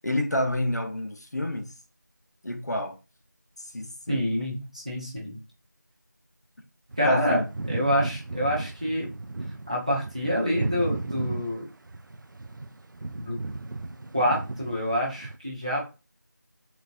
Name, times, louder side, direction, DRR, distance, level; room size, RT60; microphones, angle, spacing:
voice 1, 0.0-1.7 2.4-3.0 3.7-4.3 7.0-7.5, left 1 dB, 60° left, 0.6 m, -28 dB
voice 2, 4.1-5.4 7.0-7.4 7.7-9.1 9.7-11.6 13.2-13.4 14.1-15.9, equal, 20° right, 0.7 m, -27 dB
sound 1, 6.9-15.4, right 2 dB, 90° right, 0.4 m, -35 dB
3.9 x 2.2 x 2.5 m
figure-of-eight pair, 175°, 10 cm